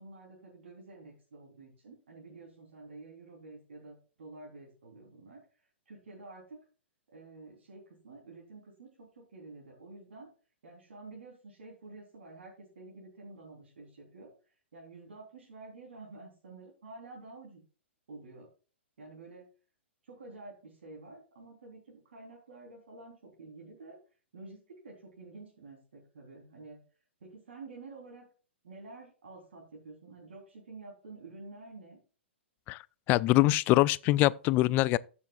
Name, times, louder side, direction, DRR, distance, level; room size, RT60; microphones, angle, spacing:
voice 1, 0.0-5.4 5.9-6.6 7.1-10.3 10.6-14.3 14.7-17.6 18.1-18.5 19.0-19.5 20.0-24.0 24.3-26.8 27.2-28.2 28.6-32.0, right 3 dB, 65° right, 3.6 m, -50 dB
voice 2, 33.1-35.0, left 17 dB, 30° left, 0.4 m, -24 dB
15.0 x 7.0 x 2.4 m
figure-of-eight pair, 115°, 7 cm